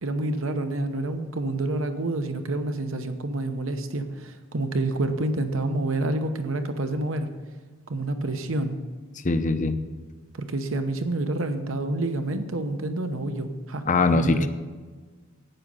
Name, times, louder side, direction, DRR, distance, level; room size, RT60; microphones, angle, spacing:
voice 1, 0.0-7.3 7.9-8.8 10.4-13.8 14.1-14.5, right 2 dB, 75° right, 8 dB, 1.0 m, -28 dB
voice 2, 9.2-9.8 13.9-14.5, left 3 dB, 40° left, 9 dB, 0.6 m, -22 dB
11.0 x 8.8 x 5.5 m, 1.4 s
head